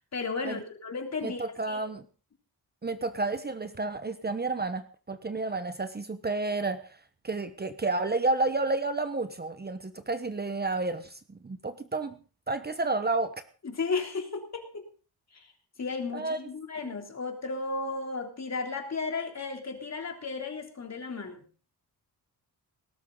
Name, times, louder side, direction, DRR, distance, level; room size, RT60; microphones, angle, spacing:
voice 1, 0.1-1.8 13.6-14.9 15.3-15.5 15.8-21.4, left 4 dB, 40° left, 3 dB, 3.5 m, -34 dB
voice 2, 1.2-2.0 2.8-6.8 7.2-12.2 12.5-13.3 16.1-16.4 16.8-16.9, right 3 dB, 25° right, 10 dB, 1.1 m, -31 dB
19.5 x 13.0 x 4.0 m, 0.37 s
wide cardioid pair, 125°, 39 cm